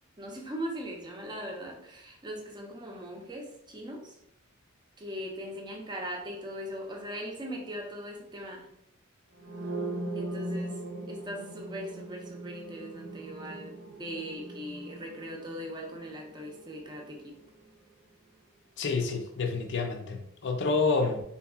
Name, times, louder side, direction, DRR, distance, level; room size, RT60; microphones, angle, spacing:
voice 1, 0.2-4.1 5.0-8.7 10.1-10.8 11.1-17.3, equal, 20° right, 1 dB, 0.6 m, -40 dB
sound 1, 9.4-17.2, right 2 dB, 65° right, 0.5 m, -39 dB
voice 2, 18.8-21.2, left 4 dB, 55° left, 4 dB, 0.5 m, -28 dB
3.6 x 2.9 x 2.3 m, 0.75 s
head